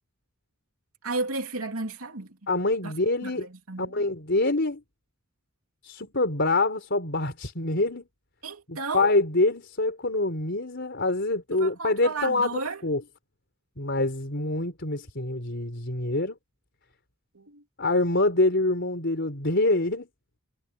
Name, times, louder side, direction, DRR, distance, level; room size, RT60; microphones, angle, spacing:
voice 1, 1.0-2.4 2.8-2.9 3.2-4.1 8.4-9.1 11.5-12.8 17.3-17.6, right 3 dB, 85° right, 2.9 m, -33 dB
voice 2, 2.5-3.5 3.8-4.8 5.8-8.1 8.7-13.0 13.8-16.4 17.8-20.1, left 2 dB, 55° left, 4.2 m, -25 dB
head